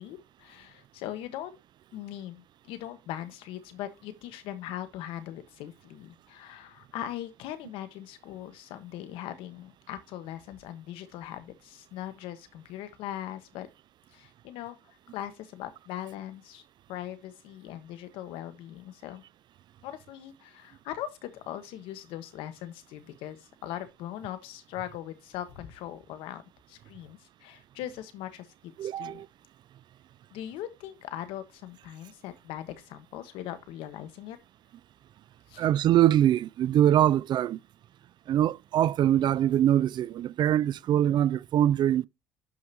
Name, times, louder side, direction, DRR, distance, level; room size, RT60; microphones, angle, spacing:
voice 1, 0.0-1.6 1.9-13.7 14.1-14.8 15.1-16.6 16.9-19.2 19.8-26.4 26.7-29.2 30.3-34.4 35.5-35.6, left 12 dB, 75° left, 1.3 m, -40 dB
voice 2, 28.8-29.3 35.6-37.6 38.3-42.1, right 11 dB, 55° right, 0.4 m, -23 dB
11.5 x 5.3 x 2.9 m
supercardioid pair, 70°, 9 cm